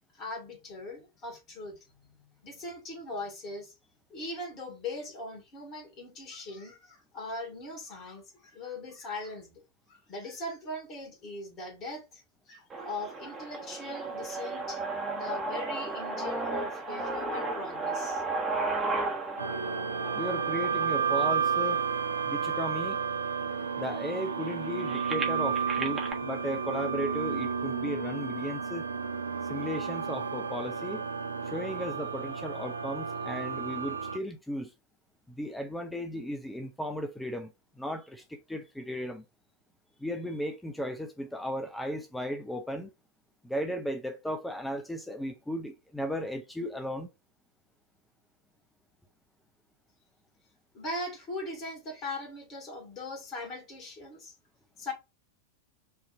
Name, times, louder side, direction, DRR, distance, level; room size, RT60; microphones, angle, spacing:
voice 1, 0.1-3.7 4.1-9.6 9.9-14.8 15.1-18.2 50.7-54.3 54.8-54.9, left 2 dB, 30° left, 2.0 m, -40 dB
sound 1, 12.7-22.7 23.3-23.4 23.7-26.1, right 3 dB, 20° right, 1.2 m, -35 dB
sound 2, 19.4-34.2, right 6 dB, 80° right, 0.4 m, -32 dB
voice 2, 20.1-21.8 22.3-23.0 23.8-28.9 29.5-31.0 31.5-34.7 35.3-37.5 37.8-39.2 40.0-42.9 43.4-47.1, equal, 5° left, 0.6 m, -35 dB
5.4 x 2.8 x 2.6 m
figure-of-eight pair, 90°, 0 cm